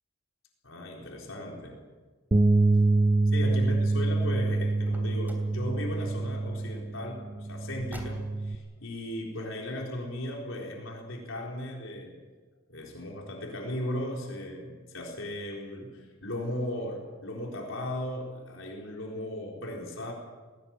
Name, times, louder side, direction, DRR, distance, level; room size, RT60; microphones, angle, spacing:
voice 1, 0.6-1.8 2.7-2.8 3.3-12.2 12.7-20.1, left 1 dB, 75° left, 0 dB, 4.0 m, -37 dB
Bass guitar, 2.3-8.6, right 2 dB, 30° right, 0.7 m, -26 dB
Car, 4.8-5.6 7.7-8.6, right 1 dB, 10° right, 3.0 m, -47 dB
19.5 x 17.5 x 9.0 m, 1.4 s
head